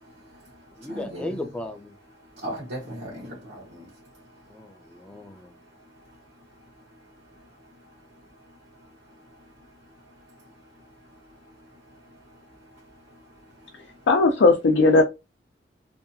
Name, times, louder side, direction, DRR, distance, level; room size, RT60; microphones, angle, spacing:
voice 1, 0.0-0.5 0.8-1.3 2.4-3.9 6.1-6.2 11.9-12.0 12.2-12.3 13.6-13.7, right 1 dB, 80° right, 0.9 m, -38 dB
voice 2, 0.8-1.9 4.5-5.6, left 1 dB, 5° left, 0.3 m, -36 dB
voice 3, 14.1-15.0, left 3 dB, 90° left, 0.5 m, -17 dB
2.7 x 2.3 x 2.6 m
head